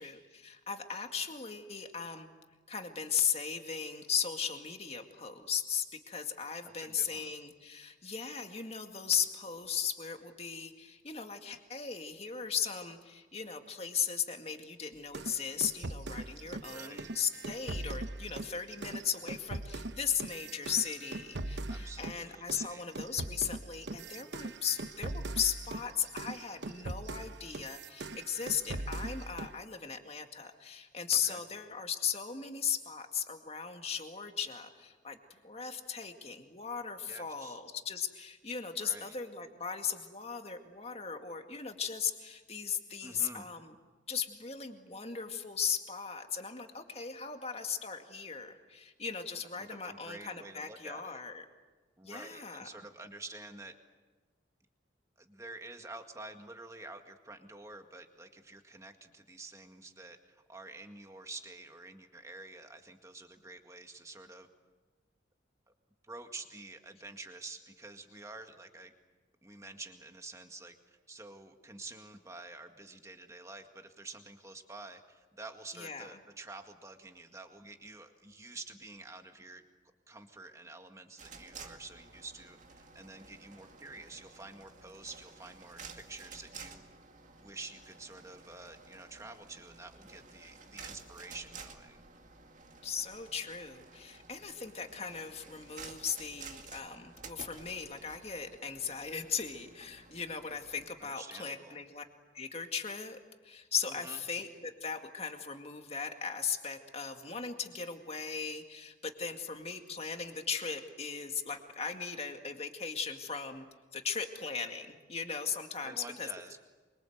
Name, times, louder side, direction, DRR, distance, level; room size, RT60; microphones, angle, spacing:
voice 1, 0.0-2.3 2.7-35.2 35.4-43.8 44.1-51.4 52.0-52.7 75.7-76.1 92.8-102.0 102.3-103.2 103.4-113.7 113.9-116.3, left 7 dB, 35° left, 5 dB, 2.1 m, -37 dB
voice 2, 6.6-7.3 16.7-17.1 21.7-22.9 31.2-31.4 37.1-37.6 38.8-39.1 43.0-43.5 49.6-51.2 52.0-53.7 55.2-64.5 66.0-68.9 69.4-79.6 80.1-86.8 87.4-92.0 101.1-101.8 103.9-104.2 115.8-116.6, right 2 dB, 15° right, 5 dB, 1.9 m, -49 dB
sound 1, 15.1-22.2 22.5-29.6, right 2 dB, 70° right, 1.0 m, -41 dB
sound 2, 81.2-100.9, right 4 dB, 40° right, 2.3 m, -52 dB
26.0 x 24.5 x 8.0 m, 1.3 s
head